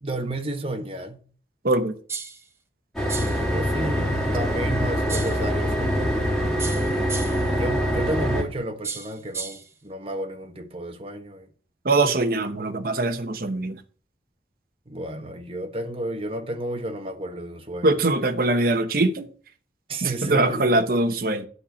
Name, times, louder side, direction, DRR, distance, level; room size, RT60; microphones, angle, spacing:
voice 1, 0.0-1.2 3.4-6.2 7.5-11.5 14.9-18.0 19.9-20.8, right 1 dB, 30° right, 1.4 m, -32 dB
sound 1, 2.1-2.4 3.1-3.4 5.1-5.4 6.6-7.5 8.8-9.7, right 5 dB, 15° right, 0.9 m, -34 dB
sound 2, 2.9-8.4, equal, ahead, 2.6 m, -24 dB
voice 2, 11.8-13.8 17.8-19.3 20.0-21.5, right 2 dB, 55° right, 0.9 m, -22 dB
11.0 x 4.3 x 6.2 m
head